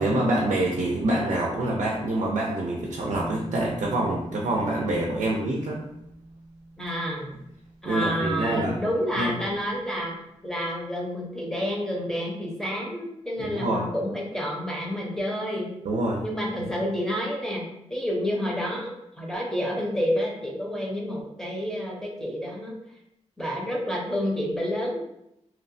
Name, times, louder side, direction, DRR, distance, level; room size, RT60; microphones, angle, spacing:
voice 1, 0.0-5.8 7.9-8.8 9.2-9.3 13.4-13.9 15.9-16.2, right 1 dB, 85° right, -2 dB, 0.4 m, -26 dB
sound 1, 3.1-9.7, right 1 dB, 80° left, 1.4 m, -43 dB
voice 2, 6.8-7.3 7.8-10.1 10.4-15.7 16.2-17.6 17.9-22.7 23.4-25.0, equal, 5° left, -3 dB, 0.6 m, -29 dB
2.8 x 2.0 x 2.5 m, 0.82 s
wide cardioid pair, 135°, 12 cm